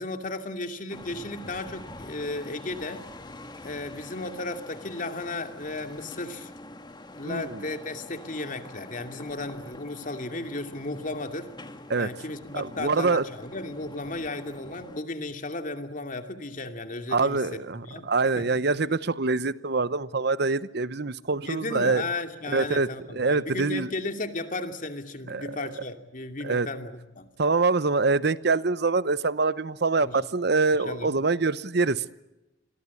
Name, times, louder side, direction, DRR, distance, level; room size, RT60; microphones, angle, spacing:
voice 1, 0.0-3.1 3.6-6.5 7.1-11.5 12.0-18.1 18.3-18.5 21.4-27.3 30.0-30.2 30.8-31.1, left 2 dB, 45° left, 7 dB, 2.6 m, -35 dB
sound 1, 0.9-15.0, left 1 dB, 25° left, 1.9 m, -45 dB
voice 2, 7.2-7.6 11.9-12.1 12.5-13.2 17.1-22.1 22.5-23.9 25.3-25.6 26.4-26.7 27.4-32.0, right 3 dB, 60° right, 16 dB, 0.9 m, -25 dB
28.5 x 22.5 x 8.5 m, 0.99 s
head